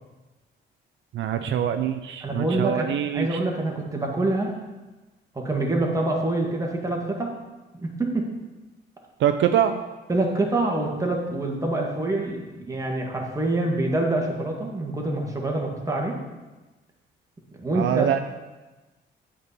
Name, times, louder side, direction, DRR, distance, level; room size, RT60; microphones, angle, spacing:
voice 1, 1.1-3.3 9.2-9.8 17.7-18.2, right 10 dB, 70° right, 7 dB, 0.6 m, -24 dB
voice 2, 2.2-2.9 3.1-4.5 5.4-7.3 7.7-8.3 10.1-16.2 17.6-18.2, right 2 dB, 15° right, -1 dB, 1.9 m, -26 dB
8.7 x 4.3 x 6.8 m, 1.2 s
cardioid pair, 90°, 20 cm